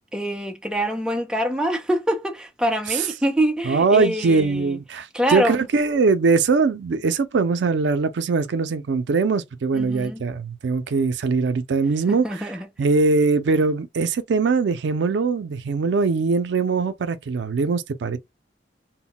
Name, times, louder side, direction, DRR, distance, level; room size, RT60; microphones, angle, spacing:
voice 1, 0.1-4.8 5.1-5.7 9.7-10.3 12.1-12.7, equal, 5° right, 0.4 m, -25 dB
voice 2, 3.7-12.5 12.8-18.2, right 4 dB, 85° right, 0.4 m, -21 dB
2.1 x 2.1 x 3.7 m
head